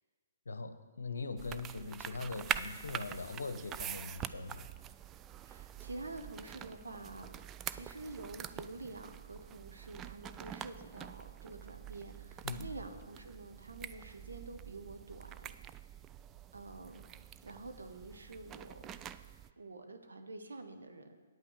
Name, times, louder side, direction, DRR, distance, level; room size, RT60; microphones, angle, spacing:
voice 1, 0.5-4.7 12.4-12.7, left 3 dB, 80° left, 10 dB, 0.8 m, -41 dB
sound 1, 1.4-19.5, right 10 dB, 20° right, 0.3 m, -45 dB
voice 2, 1.7-2.0 5.4-15.5 16.5-17.0 17.4-18.8 19.6-21.2, right 2 dB, 80° right, 7 dB, 1.1 m, -48 dB
9.1 x 5.7 x 8.0 m, 1.5 s
figure-of-eight pair, 130°, 0 cm